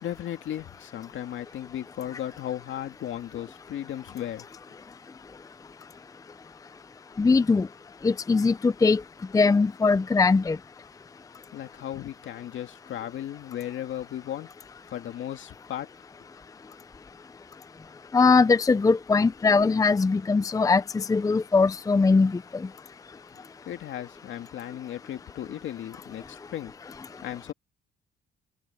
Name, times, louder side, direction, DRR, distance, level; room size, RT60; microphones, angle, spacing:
voice 1, 0.0-4.5 11.5-14.5 14.9-15.9 23.7-26.7 27.2-27.5, left 11 dB, 75° left, 2.2 m, -36 dB
voice 2, 7.2-7.7 8.0-9.0 9.3-10.6 18.1-22.4, left 4 dB, 15° left, 0.5 m, -21 dB
cardioid pair, 90°, 20 cm